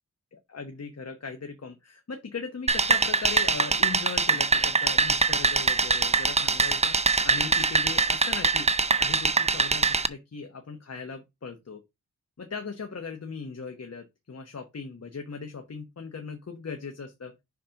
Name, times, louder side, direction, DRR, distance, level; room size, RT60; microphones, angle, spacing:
voice 1, 0.3-7.0 7.2-8.7 9.0-11.8 12.4-17.3, left 5 dB, 50° left, 5 dB, 1.1 m, -38 dB
sound 1, 2.7-10.1, right 4 dB, 20° right, 0.5 m, -23 dB
5.8 x 4.1 x 5.1 m, 0.22 s
wide cardioid pair, 80°, 34 cm